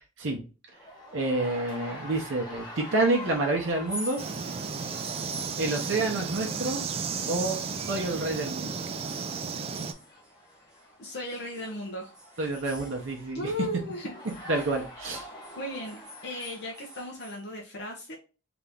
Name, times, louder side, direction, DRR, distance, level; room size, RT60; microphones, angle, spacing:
sound 1, 0.7-17.3, left 1 dB, 20° left, 0.9 m, -47 dB
voice 1, 1.1-4.2 5.6-6.9 7.3-8.9 12.4-13.5 14.5-15.3, right 2 dB, 70° right, 1 dB, 0.7 m, -28 dB
sound 2, 3.7-8.0 8.3-10.8 11.3-13.6 13.9-17.4, equal, 5° right, 0.7 m, -46 dB
sound 3, 4.2-9.9, right 5 dB, 30° right, 0.3 m, -33 dB
voice 2, 11.0-12.1 13.3-14.1 14.5-14.7 15.6-18.1, left 1 dB, 60° left, -1 dB, 0.7 m, -36 dB
2.9 x 2.5 x 3.4 m, 0.32 s
head